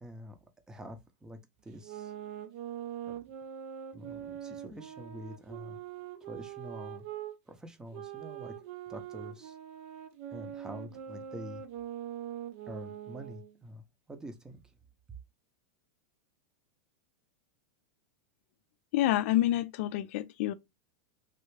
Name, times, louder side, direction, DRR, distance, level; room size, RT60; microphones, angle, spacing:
voice 1, 0.0-0.4 0.7-2.1 3.1-3.2 3.9-5.8 6.2-7.1 7.5-8.6 8.9-9.6 10.3-11.6 12.7-14.6, equal, 10° right, 0.6 m, -46 dB
sound 1, 1.7-7.3 7.9-13.5, right 10 dB, 55° right, 0.6 m, -43 dB
voice 2, 18.9-20.5, left 14 dB, 60° left, 0.4 m, -28 dB
3.3 x 2.4 x 3.1 m
supercardioid pair, 130°, 8 cm